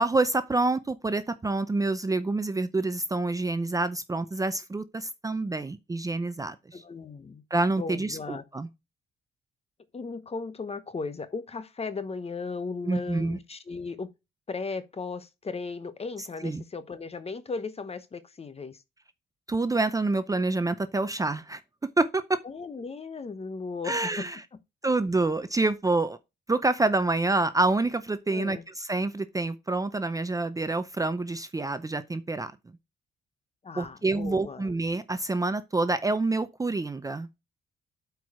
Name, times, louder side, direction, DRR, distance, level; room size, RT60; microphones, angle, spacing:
voice 1, 0.0-6.8 7.5-8.7 12.8-13.4 16.4-16.6 19.5-21.6 22.0-22.4 23.8-24.4 24.8-26.2 26.5-32.5 33.8-37.3, right 2 dB, 15° right, 0.6 m, -27 dB
voice 2, 6.7-7.4 7.8-8.4 9.9-14.1 14.5-18.8 22.4-24.3 28.3-28.6 33.6-34.7, left 4 dB, 30° left, 1.0 m, -36 dB
8.4 x 4.7 x 4.8 m
cardioid pair, 90°, 20 cm